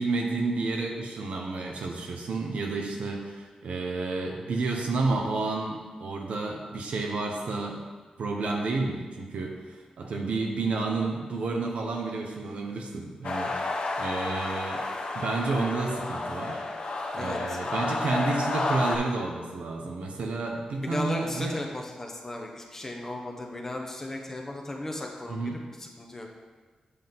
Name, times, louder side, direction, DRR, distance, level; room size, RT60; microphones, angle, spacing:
voice 1, 0.0-7.8 8.2-9.6 10.0-14.8 15.1-16.6 17.1-21.5 25.3-25.6, right 3 dB, 85° right, 1 dB, 1.1 m, -30 dB
sound 1, 13.2-19.0, left 2 dB, 55° left, 0.9 m, -31 dB
voice 2, 17.1-17.6 20.8-25.5 25.8-26.3, left 1 dB, 20° left, 1 dB, 0.9 m, -35 dB
8.3 x 6.0 x 3.7 m, 1.4 s
wide cardioid pair, 155°, 2 cm